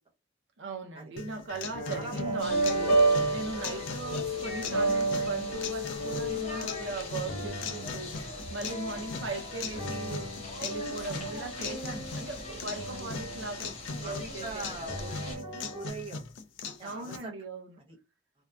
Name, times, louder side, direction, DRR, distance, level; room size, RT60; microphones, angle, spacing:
voice 1, 0.6-10.3 10.6-14.9 16.8-17.8, right 3 dB, 80° right, 0.6 m, -39 dB
sound 1, 1.2-17.2, left 5 dB, 80° left, 0.4 m, -40 dB
sound 2, 1.5-14.3 14.9-15.9, right 2 dB, 55° left, 1.0 m, -32 dB
voice 2, 1.8-2.5 3.5-3.8 6.3-6.8 12.9-13.0 14.0-16.2 16.8-17.3 17.9-18.0, right 3 dB, 30° right, 0.7 m, -43 dB
sound 3, 2.4-15.4, left 2 dB, 35° left, 0.7 m, -43 dB
2.6 x 2.2 x 2.3 m
head